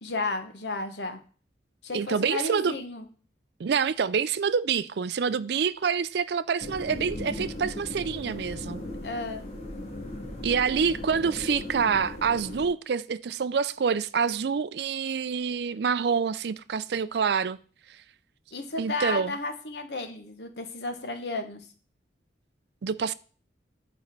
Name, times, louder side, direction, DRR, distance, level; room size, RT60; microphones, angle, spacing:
voice 1, 0.0-1.2 1.8-3.1 9.0-9.4 18.5-21.7, left 3 dB, 65° left, 1.2 m, -33 dB
voice 2, 1.9-2.8 3.6-8.8 10.4-17.6 18.8-19.3 22.8-23.1, right 6 dB, 65° right, 0.4 m, -27 dB
sound 1, 6.6-12.7, left 1 dB, 35° left, 1.9 m, -37 dB
8.3 x 4.3 x 5.8 m
head